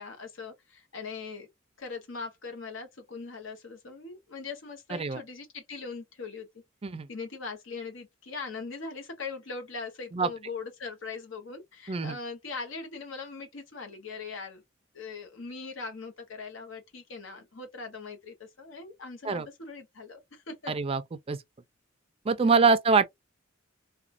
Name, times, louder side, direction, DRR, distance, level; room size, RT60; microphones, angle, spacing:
voice 1, 0.0-1.5 1.8-6.5 7.1-14.6 14.9-20.7 22.4-22.7, left 4 dB, 75° left, 0.9 m, -40 dB
voice 2, 20.7-21.0 21.3-21.4 22.3-23.1, right 4 dB, 30° right, 0.4 m, -24 dB
2.9 x 2.2 x 2.5 m
head